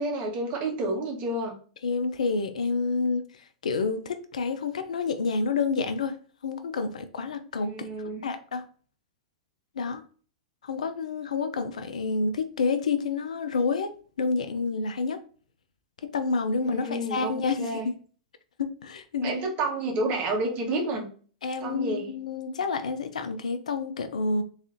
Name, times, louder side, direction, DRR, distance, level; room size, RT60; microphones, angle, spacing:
voice 1, 0.0-1.5 7.6-8.2 16.6-17.9 19.2-21.1 21.6-22.1, right 2 dB, 35° right, 1.5 m, -30 dB
voice 2, 1.8-3.2 3.6-6.2 6.4-7.9 8.2-8.6 9.8-10.0 10.6-15.2 16.1-17.9 18.8-19.3 21.4-24.4, left 4 dB, 75° left, 0.5 m, -28 dB
3.6 x 3.2 x 2.8 m
hypercardioid pair, 105°, 4 cm